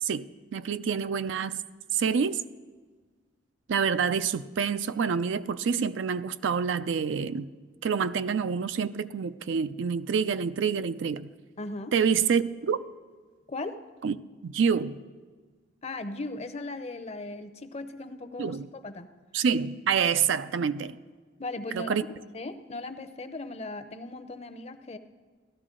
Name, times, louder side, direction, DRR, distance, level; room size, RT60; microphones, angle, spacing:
voice 1, 0.5-1.6 1.9-2.4 3.7-7.5 7.8-11.3 11.9-12.8 14.0-14.2 14.4-15.0 18.4-18.6 19.3-21.0 21.7-22.0, right 6 dB, 75° right, 13 dB, 0.4 m, -27 dB
voice 2, 11.6-11.9 13.5-13.8 15.8-19.1 21.4-22.0 22.3-25.0, left 2 dB, 35° left, 10 dB, 0.6 m, -37 dB
16.5 x 12.5 x 3.8 m, 1.4 s
head